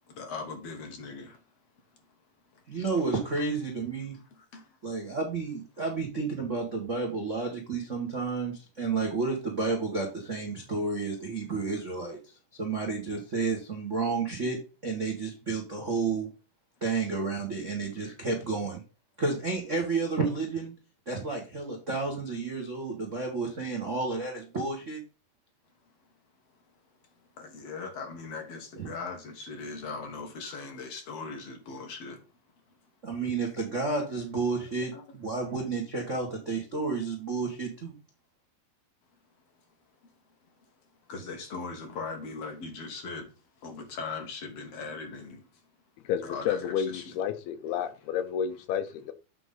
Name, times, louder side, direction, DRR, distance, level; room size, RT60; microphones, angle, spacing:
voice 1, 0.1-1.4 2.5-2.6 4.3-4.8 27.4-32.2 34.9-35.0 41.1-43.3 43.6-45.5 46.2-47.1, left 4 dB, 60° left, 1.8 m, -39 dB
voice 2, 2.7-4.2 4.8-12.2 12.6-14.6 14.8-16.3 16.8-18.8 19.2-20.7 21.1-25.0 28.8-28.9 33.0-37.9, right 4 dB, 80° right, 0.6 m, -31 dB
voice 3, 46.1-49.1, left 8 dB, 80° left, 2.7 m, -31 dB
8.3 x 3.8 x 5.5 m
omnidirectional pair, 4.5 m